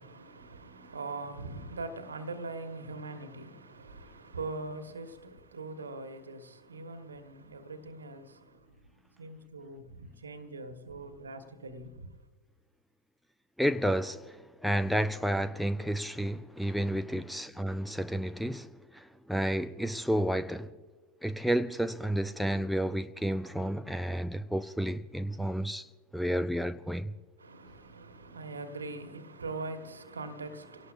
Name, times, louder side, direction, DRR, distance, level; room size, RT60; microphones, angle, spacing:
voice 1, 0.0-12.3 27.4-30.9, right 3 dB, 75° right, 1.5 m, -42 dB
voice 2, 13.6-20.7 21.2-25.9 26.1-27.1, equal, ahead, 0.4 m, -31 dB
29.5 x 17.5 x 2.6 m
figure-of-eight pair, 90°, 0 cm